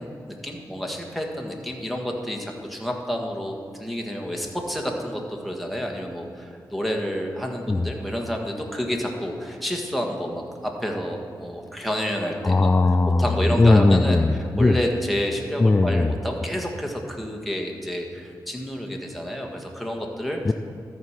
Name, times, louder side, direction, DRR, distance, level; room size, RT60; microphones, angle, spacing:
voice 1, 0.0-12.7 13.2-14.2 14.6-20.5, equal, ahead, 1 dB, 1.7 m, -29 dB
voice 2, 12.4-14.8 15.6-16.1 20.4-20.5, left 2 dB, 25° left, 8 dB, 0.4 m, -18 dB
13.5 x 4.8 x 5.8 m, 2.3 s
cardioid pair, 55°, 8 cm